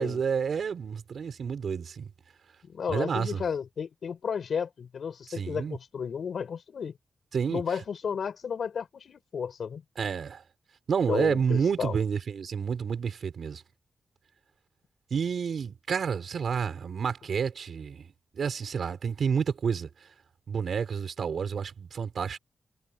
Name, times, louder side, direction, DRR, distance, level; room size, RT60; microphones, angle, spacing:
voice 1, 0.0-2.1 2.9-3.4 5.4-5.8 7.3-7.6 10.0-10.4 10.9-13.6 15.1-18.1 18.3-19.9 20.5-22.4, right 6 dB, 60° right, 5.3 m, -29 dB
voice 2, 2.6-6.9 7.5-9.8 11.1-12.0, left 6 dB, 65° left, 5.1 m, -33 dB
wide cardioid pair, 155°, 0 cm